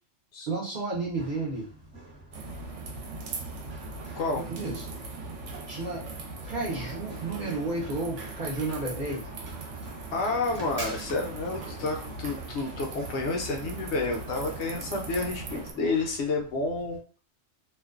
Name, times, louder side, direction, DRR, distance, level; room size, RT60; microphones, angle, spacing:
voice 1, 0.5-1.7 4.3-4.9 5.7-6.1 6.5-9.2, right 3 dB, 55° right, -4 dB, 0.5 m, -32 dB
Run, 0.9-17.0, right 1 dB, 30° right, 0.8 m, -47 dB
sound 1, 2.3-15.7, right 3 dB, 70° right, 0.9 m, -39 dB
voice 2, 10.1-17.0, left 3 dB, 65° left, 1 dB, 0.8 m, -30 dB
2.4 x 2.1 x 2.3 m, 0.37 s
omnidirectional pair, 1.4 m